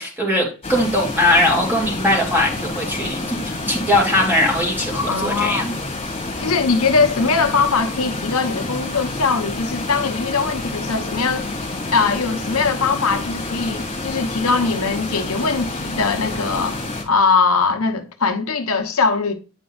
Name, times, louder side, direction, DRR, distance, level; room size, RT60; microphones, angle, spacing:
voice 1, 0.0-5.7, left 1 dB, 10° right, 2.5 m, -20 dB
sound 1, 0.6-17.0, left 2 dB, 30° left, 1.9 m, -28 dB
voice 2, 5.1-5.7 6.4-11.5 11.9-16.8 17.1-19.3, left 4 dB, 85° left, 1.0 m, -21 dB
9.0 x 5.2 x 2.3 m
head